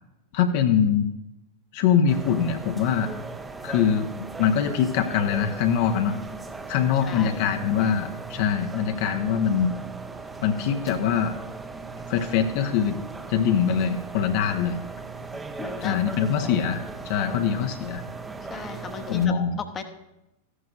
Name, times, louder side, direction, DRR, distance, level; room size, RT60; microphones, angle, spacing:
voice 1, 0.3-1.1 1.7-3.1 3.6-6.2 6.7-9.8 10.4-11.4 12.1-13.0 13.3-14.8 15.8-18.0 19.1-19.6, left 7 dB, 50° left, 5 dB, 0.8 m, -23 dB
sound 1, 2.1-19.3, right 4 dB, 10° right, 0.8 m, -38 dB
voice 2, 7.0-7.5 15.6-16.0 18.5-19.8, left 5 dB, 25° left, 6 dB, 1.0 m, -36 dB
14.5 x 11.0 x 2.5 m, 0.91 s
figure-of-eight pair, 90°, 0 cm